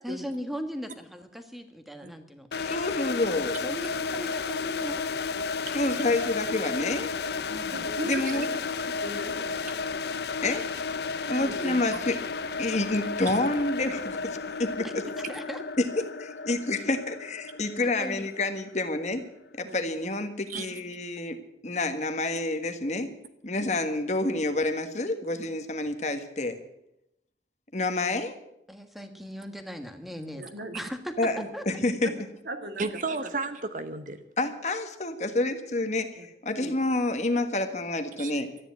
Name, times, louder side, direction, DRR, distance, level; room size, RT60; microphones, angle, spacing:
voice 1, 0.0-2.5 3.6-5.0 7.5-8.0 14.8-14.9 15.3-15.6 17.8-18.3 28.7-30.5 30.7-31.7, equal, ahead, 7 dB, 1.4 m, -38 dB
sound 1, 2.5-19.3, left 4 dB, 65° left, 0.6 m, -33 dB
voice 2, 2.6-3.6 5.7-7.1 8.0-8.5 10.4-10.6 11.3-12.2 12.6-15.0 15.8-16.0 16.5-19.2 19.5-23.1 23.4-26.6 27.7-28.4 31.2-32.1 34.4-38.5, left 2 dB, 40° left, 8 dB, 1.5 m, -28 dB
voice 3, 7.7-8.6 9.0-9.7 11.3-11.8 19.6-19.8 30.4-30.8 32.5-32.9 36.2-36.3 36.5-36.8, right 1 dB, 70° right, 5 dB, 1.9 m, -38 dB
voice 4, 32.8-34.2 38.2-38.3, right 3 dB, 45° right, 9 dB, 1.0 m, -33 dB
13.5 x 10.0 x 9.3 m, 0.82 s
head